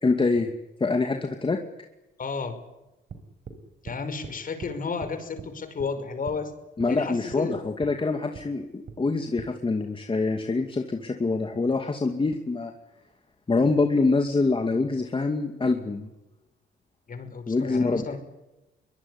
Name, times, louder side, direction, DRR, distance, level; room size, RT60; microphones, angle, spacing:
voice 1, 0.0-0.5 0.8-1.6 6.8-12.7 13.5-16.1 17.5-18.2, left 3 dB, 25° left, 4 dB, 2.4 m, -25 dB
voice 2, 2.2-2.6 3.8-6.5 6.9-7.5 17.1-18.2, left 5 dB, 45° left, 9 dB, 5.5 m, -32 dB
sound 1, 3.1-3.6 3.9-4.4 4.6-4.7 5.0-5.5 5.8-5.9 6.3-6.4 6.8-6.9 7.3-7.4 7.8-7.9 8.3-8.5 8.9-9.0 9.4-9.5, right 5 dB, 50° right, 4.9 m, -41 dB
23.0 x 22.0 x 10.0 m, 0.98 s
cardioid pair, 90°, 20 cm